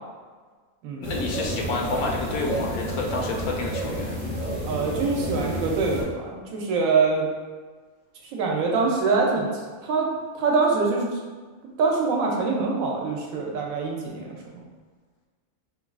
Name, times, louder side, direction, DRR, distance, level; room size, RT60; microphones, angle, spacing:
voice 1, 1.0-4.2, left 2 dB, 85° left, -1 dB, 1.0 m, -29 dB
sound 1, 1.0-6.0, equal, 40° right, 0.9 m, -30 dB
voice 2, 4.7-7.3 8.3-9.5 9.8-10.1 10.3-11.1 11.8-14.6, right 4 dB, 75° right, -1 dB, 1.0 m, -24 dB
4.1 x 2.3 x 2.3 m, 1.5 s
omnidirectional pair, 1.5 m